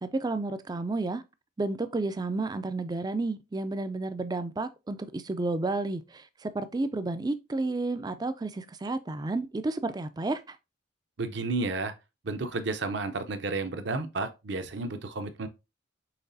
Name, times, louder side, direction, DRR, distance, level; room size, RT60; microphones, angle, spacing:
voice 1, 0.0-1.2 1.6-10.6, right 2 dB, 20° right, 0.3 m, -31 dB
voice 2, 11.2-11.9 12.2-15.5, right 3 dB, 60° right, 0.6 m, -32 dB
5.8 x 3.3 x 2.6 m
head